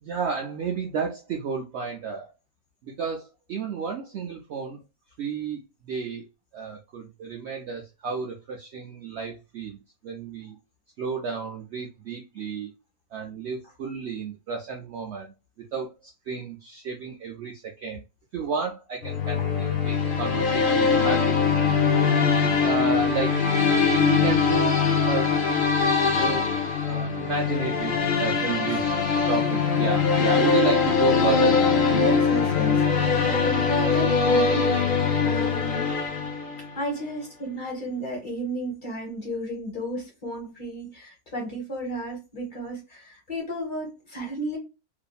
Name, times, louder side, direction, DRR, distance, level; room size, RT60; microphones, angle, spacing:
voice 1, 0.0-2.3 2.8-4.8 5.2-6.2 6.5-10.6 11.0-12.7 13.1-18.0 18.3-22.0 22.6-23.3 23.9-24.8 25.1-25.6 26.1-26.5 26.8-29.0 29.3-31.6, right 5 dB, 70° right, 1 dB, 0.6 m, -32 dB
sound 1, 19.0-36.7, left 5 dB, 80° left, 0.4 m, -22 dB
voice 2, 31.9-35.0 35.2-35.9 36.7-44.6, equal, 40° left, 0 dB, 0.9 m, -33 dB
2.7 x 2.5 x 2.3 m, 0.27 s
omnidirectional pair, 1.6 m